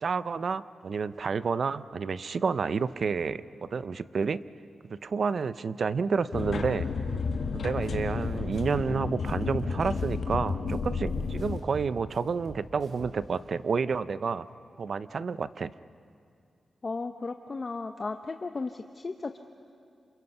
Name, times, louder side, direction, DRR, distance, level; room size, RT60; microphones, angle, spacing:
voice 1, 0.0-4.4 4.9-6.9 7.5-14.5 14.8-15.7, right 5 dB, 50° right, 15 dB, 0.5 m, -30 dB
sound 1, 6.3-11.6, left 4 dB, 55° left, 1.3 m, -31 dB
sound 2, 7.8-8.0 8.3-10.9 11.2-13.4, right 4 dB, 85° right, 3.3 m, -47 dB
voice 2, 16.8-19.4, left 3 dB, 30° left, 7 dB, 0.6 m, -35 dB
28.5 x 27.0 x 5.5 m, 2.4 s
wide cardioid pair, 175°, 0 cm